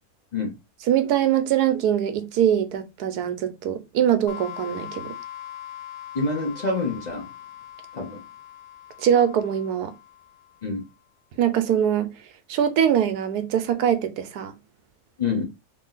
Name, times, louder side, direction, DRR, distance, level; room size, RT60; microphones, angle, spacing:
voice 1, 0.9-5.1 9.0-9.9 11.4-12.1 12.5-14.5, right 9 dB, 85° right, 1.2 m, -22 dB
sound 1, 4.3-10.8, left 11 dB, 75° left, 1.1 m, -41 dB
voice 2, 6.1-7.3 7.9-8.2 10.6-10.8 15.2-15.4, left 3 dB, 40° left, 0.6 m, -26 dB
3.0 x 2.7 x 3.9 m
omnidirectional pair, 1.6 m